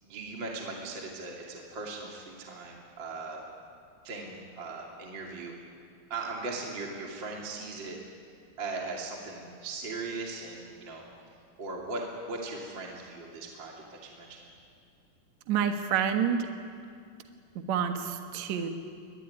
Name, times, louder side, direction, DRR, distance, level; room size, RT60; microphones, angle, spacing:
voice 1, 0.0-3.4 4.0-5.7 6.1-8.0 8.6-11.0 11.6-14.5, right 3 dB, 30° right, -1 dB, 2.9 m, -39 dB
voice 2, 15.5-16.5 17.6-18.7, right 8 dB, 55° right, 5 dB, 2.3 m, -28 dB
24.5 x 23.5 x 9.7 m, 2.3 s
omnidirectional pair, 4.8 m